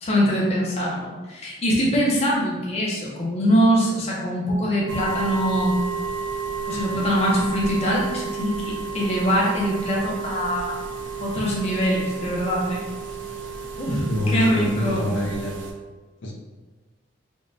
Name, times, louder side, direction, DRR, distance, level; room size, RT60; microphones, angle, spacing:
voice 1, 0.0-5.8 6.7-10.8 11.2-12.8 13.8-15.0, equal, 35° left, -4 dB, 0.6 m, -23 dB
sound 1, 4.9-15.7, right 5 dB, 80° right, 0.4 m, -32 dB
voice 2, 14.1-15.5 16.2-16.3, left 1 dB, 80° left, -1 dB, 0.5 m, -25 dB
3.5 x 2.1 x 2.5 m, 1.2 s
head